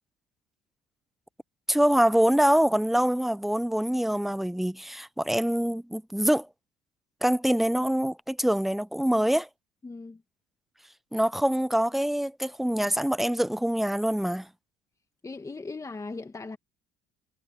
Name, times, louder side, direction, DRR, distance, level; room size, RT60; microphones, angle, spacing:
voice 1, 1.7-6.5 7.2-9.5 11.1-14.5, equal, ahead, 0.6 m, -25 dB
voice 2, 9.8-10.2 15.2-16.6, left 3 dB, 20° left, 2.0 m, -38 dB
cardioid pair, 100°, 17 cm